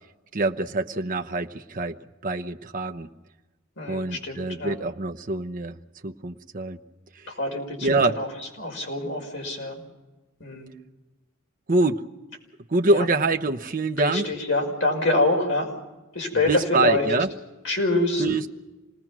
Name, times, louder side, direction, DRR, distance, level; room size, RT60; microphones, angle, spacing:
voice 1, 0.3-3.1 3.9-5.8 6.0-6.8 7.1-7.3 7.8-8.2 11.7-12.0 12.7-14.3 16.5-17.3 18.2-18.5, right 2 dB, 40° right, 6 dB, 0.9 m, -25 dB
voice 2, 3.8-4.7 7.3-8.3 8.6-9.8 10.4-10.7 12.9-13.0 14.0-15.7 16.1-17.1 17.6-18.2, left 2 dB, 60° left, 0 dB, 5.9 m, -26 dB
27.5 x 19.5 x 6.1 m, 1.1 s
head